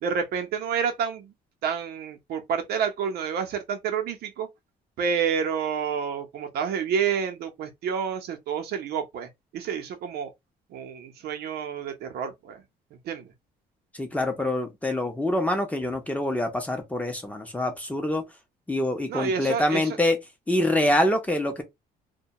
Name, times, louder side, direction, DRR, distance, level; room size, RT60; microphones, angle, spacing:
voice 1, 0.0-1.3 1.6-4.5 5.0-10.3 10.7-12.6 12.9-13.3 19.1-20.0, right 7 dB, 70° right, 0.7 m, -29 dB
voice 2, 14.0-18.2 18.7-20.2 20.5-21.6, left 1 dB, 10° left, 0.7 m, -25 dB
2.2 x 2.2 x 2.7 m
cardioid pair, 110°, 17 cm